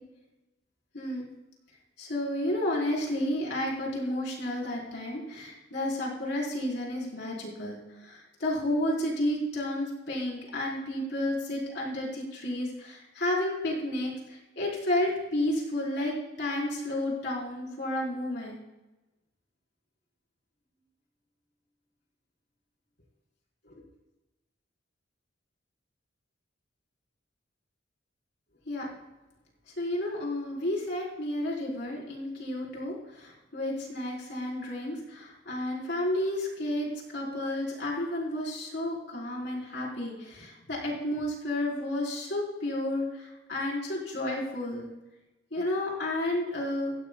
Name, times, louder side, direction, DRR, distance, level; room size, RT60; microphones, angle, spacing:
voice 1, 0.9-1.3 2.0-18.6 23.7-23.8 28.7-28.9 29.8-44.9 45.5-47.0, left 1 dB, 65° left, -3 dB, 4.2 m, -31 dB
16.5 x 16.0 x 2.3 m, 1.0 s
head